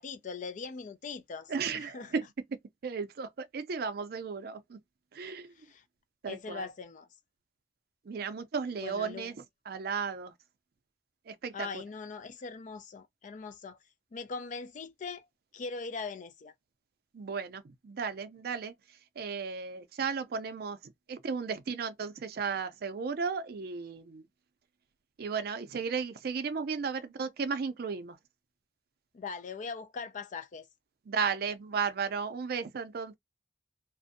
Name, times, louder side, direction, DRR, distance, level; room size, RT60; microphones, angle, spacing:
voice 1, 0.0-2.1 5.6-5.8 6.3-7.1 8.8-9.3 11.5-13.8 14.1-15.3 15.5-16.5 29.1-30.7, left 4 dB, 45° left, 0.4 m, -41 dB
voice 2, 1.5-2.2 2.8-4.8 5.1-5.5 6.2-6.7 8.1-10.3 11.3-11.8 17.1-18.7 19.2-24.2 25.2-28.2 31.1-33.2, right 5 dB, 60° right, 0.4 m, -35 dB
2.5 x 2.0 x 2.6 m
head